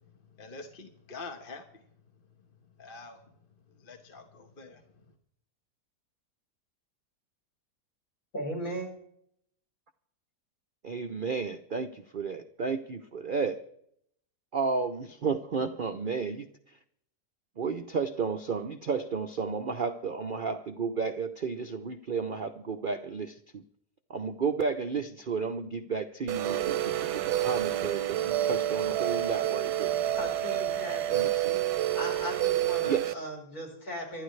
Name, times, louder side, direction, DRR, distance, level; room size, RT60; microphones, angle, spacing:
voice 1, 0.4-1.6 2.8-3.2 3.7-5.1, left 3 dB, 35° left, 4 dB, 1.4 m, -45 dB
voice 2, 8.3-8.9 30.2-31.3 31.9-34.2, equal, 60° left, -2 dB, 4.9 m, -37 dB
voice 3, 10.8-13.6 14.5-16.8 17.6-23.6 24.1-30.0 31.1-31.6 32.8-33.2, right 5 dB, 55° right, 7 dB, 0.6 m, -32 dB
sound 1, 26.3-33.1, right 13 dB, 90° right, 1.3 m, -28 dB
25.0 x 12.0 x 3.2 m, 0.71 s
omnidirectional pair, 1.8 m